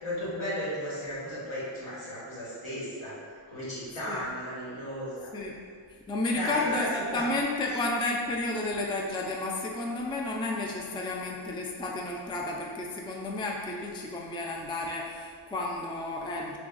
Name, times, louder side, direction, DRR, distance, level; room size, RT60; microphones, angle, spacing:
voice 1, 0.0-3.1 3.5-5.3 6.3-6.9 7.1-7.3, equal, 75° left, -9 dB, 1.5 m, -35 dB
voice 2, 5.9-16.6, left 2 dB, 10° left, -1 dB, 0.3 m, -32 dB
3.3 x 2.4 x 3.8 m, 2.1 s
wide cardioid pair, 45°, 48 cm